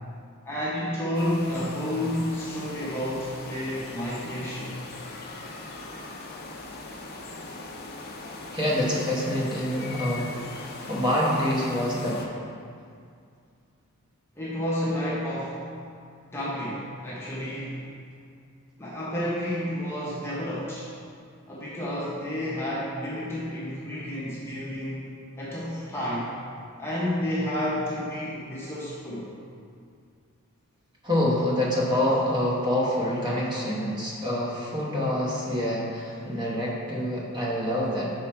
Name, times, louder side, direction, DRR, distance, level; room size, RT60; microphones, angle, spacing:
voice 1, 0.4-4.8 14.4-15.6 16.3-17.9 18.8-20.9 21.5-25.1 25.4-26.3 26.8-29.3, left 1 dB, 10° left, -7 dB, 0.8 m, -30 dB
sound 1, 1.1-12.3, left 2 dB, 45° left, 0.6 m, -40 dB
voice 2, 8.5-10.4 10.9-12.3 31.0-38.1, left 1 dB, 20° right, -5 dB, 0.9 m, -26 dB
5.6 x 4.4 x 4.4 m, 2.3 s
head